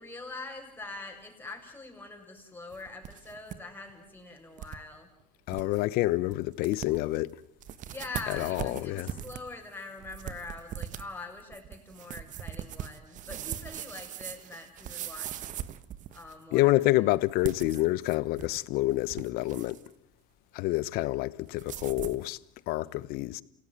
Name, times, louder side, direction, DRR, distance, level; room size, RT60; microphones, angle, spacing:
voice 1, 0.0-5.1 7.9-15.5 16.1-17.0, left 3 dB, 10° left, 6.9 m, -43 dB
sound 1, 2.7-3.6 3.9-4.0 4.6-4.8 5.2-5.3 5.5-5.8 6.3-6.4 6.6-7.2 7.6-16.4 17.3-18.6 18.9-19.9 21.6-22.3, right 10 dB, 45° right, 1.4 m, -40 dB
voice 2, 5.5-7.4 8.3-9.1 16.5-19.8 20.5-22.4 22.7-23.4, left 18 dB, 60° left, 1.0 m, -28 dB
28.5 x 17.0 x 9.4 m
supercardioid pair, 90°, 18 cm